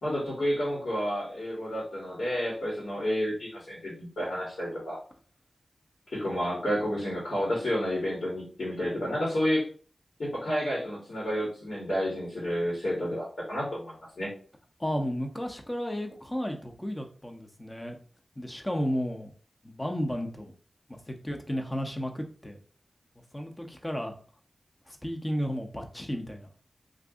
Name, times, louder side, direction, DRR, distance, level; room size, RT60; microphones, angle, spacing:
voice 1, 0.0-5.0 6.1-9.7 10.2-14.3, equal, 75° left, -6 dB, 1.4 m, -30 dB
voice 2, 14.8-18.0 18.4-19.3 19.6-20.5 20.9-22.6 23.3-24.1 24.9-26.5, equal, 20° left, 3 dB, 0.8 m, -33 dB
2.6 x 2.5 x 3.6 m, 0.42 s
cardioid pair, 40°, 0 cm